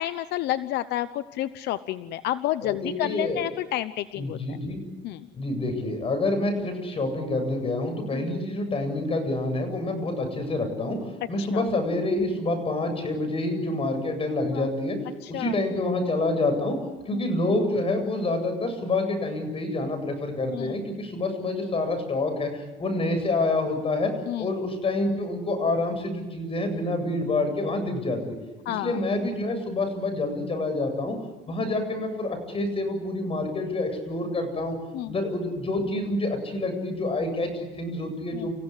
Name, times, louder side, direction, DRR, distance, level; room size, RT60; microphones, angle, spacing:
voice 1, 0.0-4.4 5.0-5.2 8.1-8.3 11.4-11.6 14.5-14.6 15.3-15.5 20.5-20.7 24.3-24.5 28.7-29.0 34.9-35.1 38.4-38.5, left 14 dB, 80° left, 13 dB, 0.9 m, -30 dB
voice 2, 2.6-3.4 4.1-4.8 5.3-15.0 15.3-16.8 17.1-24.1 24.4-28.3 28.7-31.2 31.5-34.7 35.0-38.5, left 2 dB, 35° left, 6 dB, 8.0 m, -27 dB
29.5 x 16.5 x 9.8 m, 1.1 s
cardioid pair, 110°, 17 cm